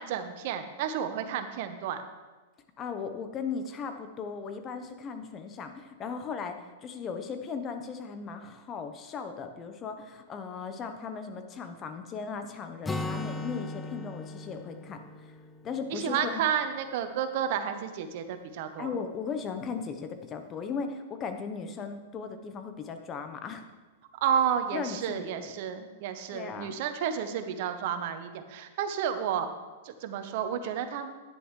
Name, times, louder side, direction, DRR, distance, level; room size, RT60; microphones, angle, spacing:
voice 1, 0.0-2.0 15.9-18.9 24.2-29.5 29.8-31.1, right 8 dB, 55° right, 9 dB, 0.9 m, -31 dB
voice 2, 2.8-15.3 15.6-16.4 18.8-23.6 24.7-25.5 26.3-26.8, left 5 dB, 30° left, 7 dB, 1.0 m, -37 dB
Acoustic guitar, 12.8-16.6, left 2 dB, 10° left, 0.6 m, -38 dB
11.0 x 9.9 x 3.2 m, 1.2 s
hypercardioid pair, 105°, 0 cm